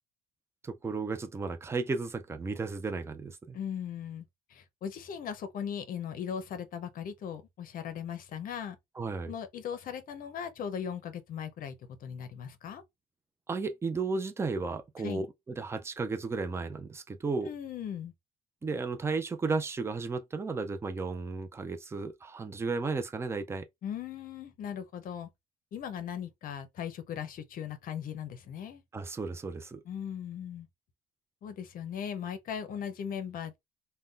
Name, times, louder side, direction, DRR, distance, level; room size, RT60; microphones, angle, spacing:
voice 1, 0.6-3.6 9.0-9.3 13.5-17.5 18.6-23.7 28.9-29.8, right 4 dB, 15° right, 0.4 m, -34 dB
voice 2, 3.5-4.2 4.5-8.8 9.3-11.7 12.0-12.8 15.0-15.2 17.4-18.1 23.8-25.3 25.7-28.8 29.8-30.7 31.4-33.6, left 8 dB, 55° left, 0.6 m, -38 dB
2.5 x 2.2 x 3.6 m
cardioid pair, 110°, 17 cm